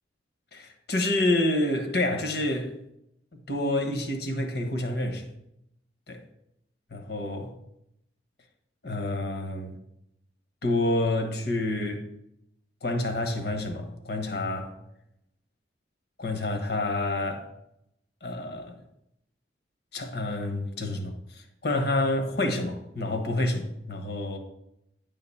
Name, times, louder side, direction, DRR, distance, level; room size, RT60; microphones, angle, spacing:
voice 1, 0.5-2.7 3.3-5.3 6.1-6.2 6.9-7.5 8.8-9.8 10.6-12.0 12.8-14.7 16.2-17.5 18.2-18.7 19.9-24.4, left 1 dB, 65° left, 1.3 m, -28 dB
10.5 x 3.9 x 7.1 m
head